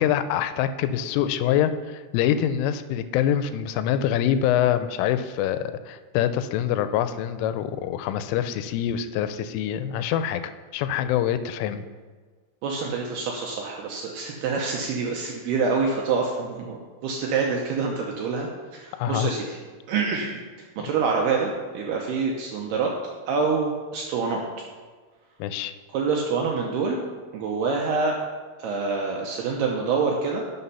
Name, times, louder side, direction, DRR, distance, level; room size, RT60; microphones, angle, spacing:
voice 1, 0.0-11.8 19.0-19.3 25.4-25.7, left 10 dB, 90° left, 11 dB, 3.1 m, -25 dB
voice 2, 12.6-19.6 19.9-20.3 20.8-22.9 23.3-24.4 25.9-27.0 27.3-28.2 28.6-30.4, right 4 dB, 80° right, 0 dB, 2.4 m, -26 dB
11.0 x 6.3 x 5.6 m, 1.4 s
omnidirectional pair, 5.6 m